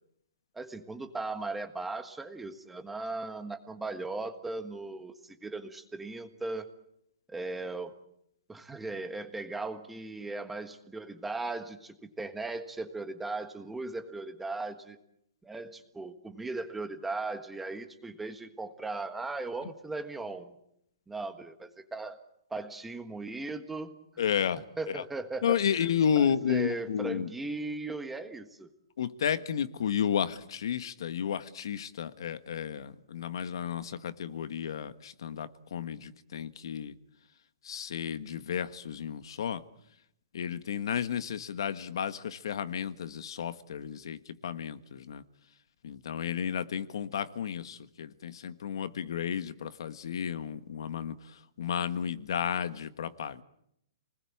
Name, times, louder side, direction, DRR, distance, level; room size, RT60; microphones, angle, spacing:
voice 1, 0.5-6.7 7.3-7.9 8.5-15.0 15.4-20.5 21.1-22.2 22.5-24.0 24.3-24.4 24.8-25.9 26.1-28.7, right 3 dB, 5° right, 1.4 m, -38 dB
voice 2, 24.2-24.6 24.9-25.0 25.4-27.3 29.0-36.9 37.6-39.6 40.3-45.2 45.8-51.1 51.6-53.4, left 8 dB, 60° left, 1.5 m, -32 dB
29.5 x 20.0 x 8.7 m
hypercardioid pair, 170°, 3 cm